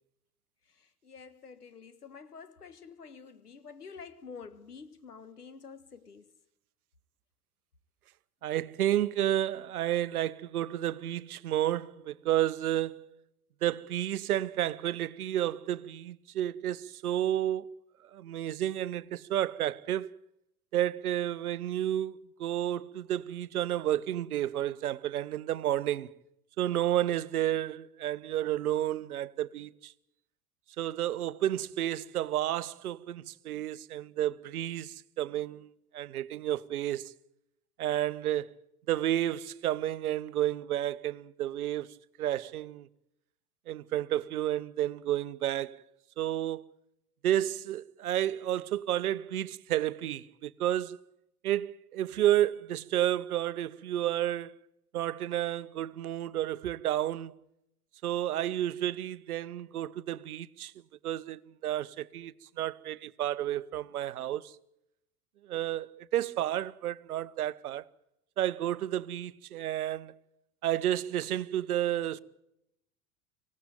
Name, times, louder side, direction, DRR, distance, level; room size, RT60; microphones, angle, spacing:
voice 1, 0.8-6.3, left 5 dB, 85° left, 1.7 m, -48 dB
voice 2, 8.4-13.2 13.6-17.7 18.1-20.1 20.7-26.1 26.6-29.9 30.8-35.7 35.9-37.1 37.8-38.5 38.9-41.9 42.2-42.9 43.7-45.8 46.2-46.7 47.2-51.0 51.4-54.6 54.9-57.3 58.0-60.7 61.0-64.5 65.5-67.8 68.4-70.2 70.6-72.2, right 12 dB, 70° right, 0.9 m, -31 dB
25.5 x 17.0 x 8.9 m
figure-of-eight pair, 80°, 45 cm